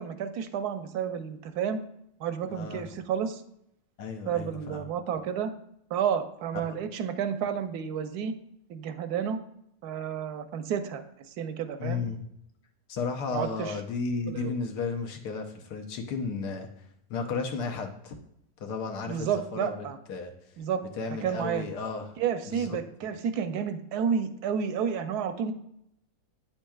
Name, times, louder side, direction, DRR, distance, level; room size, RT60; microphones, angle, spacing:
voice 1, 0.0-1.8 2.2-3.4 4.3-5.5 5.9-8.3 8.7-9.4 9.8-11.0 11.4-12.0 13.3-13.8 14.2-14.5 19.1-20.0 20.6-20.8 21.2-21.7 22.2-25.5, right 7 dB, 80° right, 9 dB, 1.1 m, -31 dB
voice 2, 2.5-2.8 4.0-4.8 6.6-6.8 11.8-12.2 12.9-16.7 17.1-18.1 18.6-20.3 21.0-22.1 22.5-23.1, left 4 dB, 80° left, 4 dB, 1.4 m, -34 dB
8.8 x 5.4 x 2.3 m, 0.75 s
omnidirectional pair, 1.7 m